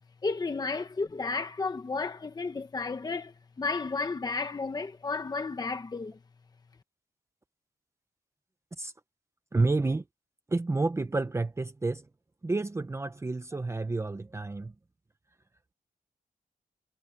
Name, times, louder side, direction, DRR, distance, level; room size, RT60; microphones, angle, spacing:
voice 1, 0.2-6.2, left 4 dB, 25° left, 1.0 m, -33 dB
voice 2, 9.5-10.0 10.5-12.1 12.4-14.7, right 3 dB, 20° right, 0.7 m, -29 dB
wide cardioid pair, 170°, 15 cm